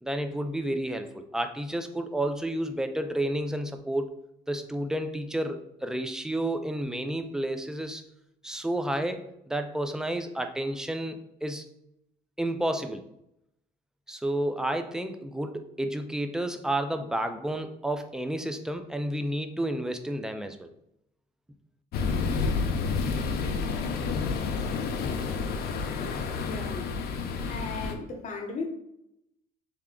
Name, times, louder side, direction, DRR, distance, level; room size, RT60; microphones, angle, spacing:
voice 1, 0.0-4.1 4.5-8.0 8.4-11.7 12.4-13.0 14.1-20.7, right 1 dB, 5° right, 7 dB, 0.4 m, -31 dB
sound 1, 21.9-27.9, left 4 dB, 70° left, 0.6 m, -29 dB
voice 2, 26.2-26.9 27.4-28.7, left 3 dB, 45° left, 3 dB, 0.9 m, -37 dB
3.5 x 3.3 x 3.7 m, 0.80 s
cardioid pair, 110°, 17 cm